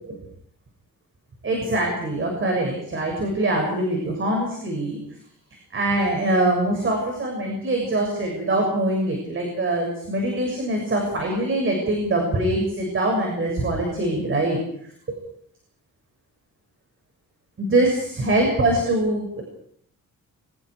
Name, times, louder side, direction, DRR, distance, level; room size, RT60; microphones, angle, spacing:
voice 1, 1.4-5.0 5.7-14.6 17.6-19.4, right 1 dB, 40° right, 1 dB, 6.8 m, -23 dB
29.5 x 25.0 x 4.9 m, 0.68 s
wide cardioid pair, 155°, 32 cm